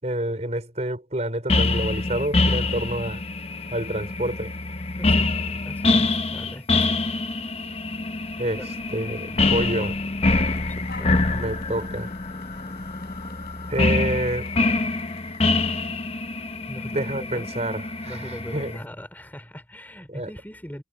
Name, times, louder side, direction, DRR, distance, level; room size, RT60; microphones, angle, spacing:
voice 1, 0.0-3.2 3.7-4.5 8.4-9.9 11.3-12.1 13.7-14.5 16.8-18.7 20.1-20.3, right 1 dB, 40° right, 5.8 m, -28 dB
sound 1, 1.5-18.8, left 2 dB, 35° left, 1.0 m, -25 dB
voice 2, 5.0-7.0 8.6-8.8 9.6-9.9 10.2-11.3 16.7-17.6 18.0-20.8, equal, 10° left, 4.1 m, -40 dB
sound 2, 10.5-15.9, left 3 dB, 60° left, 8.0 m, -47 dB
head